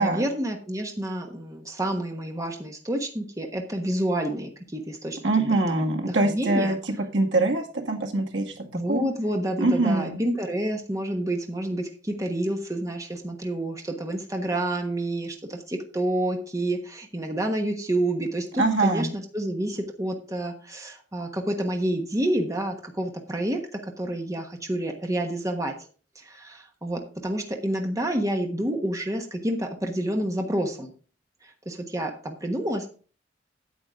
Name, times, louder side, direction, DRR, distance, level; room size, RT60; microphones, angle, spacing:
voice 1, 0.0-6.8 8.7-23.6 24.0-25.7 26.2-30.9 31.4-32.9, right 1 dB, 20° right, 3 dB, 1.2 m, -29 dB
voice 2, 5.2-8.5 8.9-9.1 9.6-10.2 18.6-19.2, right 2 dB, 80° right, 1 dB, 2.0 m, -23 dB
9.3 x 8.4 x 3.6 m, 0.38 s
head